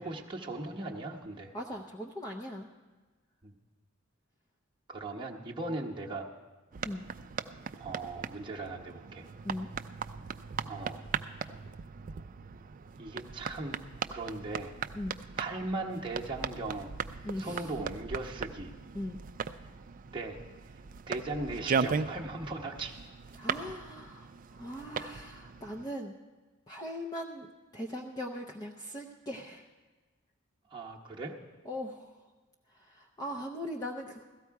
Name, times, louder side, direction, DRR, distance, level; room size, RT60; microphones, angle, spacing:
voice 1, 0.0-1.5 3.4-3.5 4.9-6.3 7.8-9.3 10.6-11.0 13.0-13.8 14.1-14.7 15.4-16.9 17.4-18.7 20.1-20.4 21.1-23.0 30.7-31.3, right 2 dB, 25° right, -2 dB, 0.9 m, -38 dB
voice 2, 1.5-2.7 6.8-7.1 9.4-9.7 14.9-15.2 17.2-17.7 18.9-19.2 23.3-26.2 26.7-29.6 31.6-32.2 32.7-34.2, equal, 20° left, 1 dB, 0.6 m, -40 dB
sound 1, 6.7-25.9, right 6 dB, 40° right, 0.4 m, -38 dB
16.5 x 13.5 x 4.6 m, 1.3 s
head